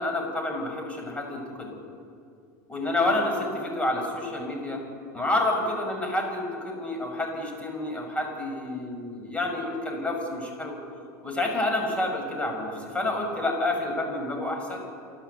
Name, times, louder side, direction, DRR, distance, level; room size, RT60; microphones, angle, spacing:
voice 1, 0.0-1.8 2.7-4.8 5.1-10.8 11.2-14.8, left 2 dB, 10° left, 1 dB, 6.4 m, -29 dB
28.5 x 12.0 x 8.3 m, 2.4 s
hypercardioid pair, 95°, 10 cm